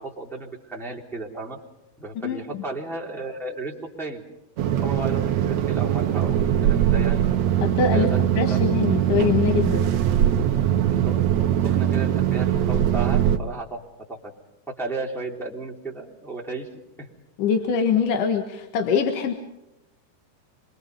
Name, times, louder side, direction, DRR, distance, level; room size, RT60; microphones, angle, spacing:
voice 1, 0.0-1.6 2.0-4.2 4.8-7.3 7.9-8.6 10.9-14.3 14.7-16.7 17.0-17.1, right 2 dB, ahead, -4 dB, 2.9 m, -34 dB
sound 1, 4.6-13.4, right 11 dB, 75° right, 1.6 m, -21 dB
voice 2, 7.6-8.1 8.4-9.9 17.4-19.3, left 6 dB, 60° left, 5 dB, 2.6 m, -23 dB
26.5 x 23.5 x 5.5 m, 0.92 s
omnidirectional pair, 4.9 m